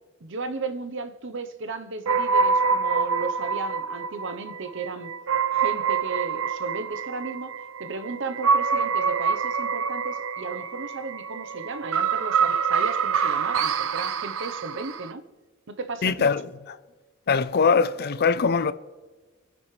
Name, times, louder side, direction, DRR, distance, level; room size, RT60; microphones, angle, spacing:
voice 1, 0.2-5.1 5.5-7.5 7.8-15.2 15.7-16.3, right 3 dB, 65° right, 0.9 m, -35 dB
sound 1, 2.0-15.1, right 5 dB, 85° right, 0.6 m, -26 dB
voice 2, 16.0-16.4 17.3-18.7, left 5 dB, 50° left, 0.5 m, -21 dB
24.5 x 10.5 x 3.3 m
head